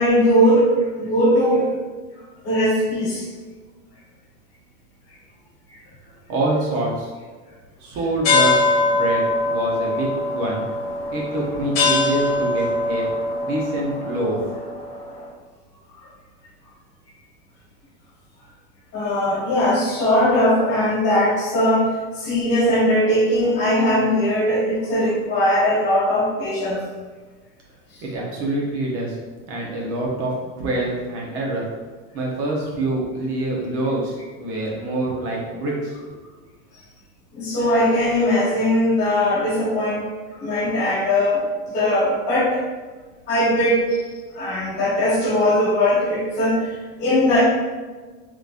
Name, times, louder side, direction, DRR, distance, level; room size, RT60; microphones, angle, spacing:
voice 1, 0.0-1.6 2.4-3.2 18.9-26.8 37.3-40.0 40.4-41.4 41.7-42.6 43.3-43.9 44.3-46.6 47.0-47.4, left 1 dB, 35° left, -7 dB, 1.4 m, -19 dB
voice 2, 6.3-7.1 7.8-8.6 8.9-10.6 11.1-13.1 13.4-14.4 28.0-29.2 29.5-31.7 32.1-35.9, right 1 dB, 45° right, -2 dB, 0.9 m, -25 dB
sound 1, 8.2-15.1, left 2 dB, 50° left, 1.1 m, -22 dB
3.9 x 3.0 x 2.5 m, 1.3 s
cardioid pair, 180°, 32 cm